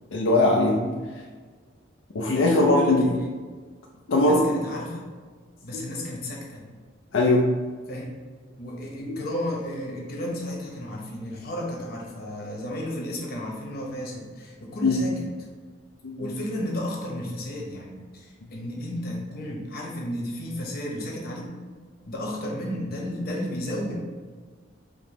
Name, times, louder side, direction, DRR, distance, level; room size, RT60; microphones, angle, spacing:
voice 1, 0.1-0.9 2.1-3.0 4.1-4.4 5.7-5.8 7.1-7.4 14.8-15.0 16.0-16.1, left 2 dB, 85° left, -1 dB, 0.5 m, -20 dB
voice 2, 2.5-3.1 4.2-5.0 5.6-6.6 7.9-8.1 8.6-15.3 16.2-21.5 22.1-24.0, left 1 dB, 55° left, -2 dB, 1.0 m, -33 dB
5.0 x 2.9 x 3.0 m, 1.5 s
head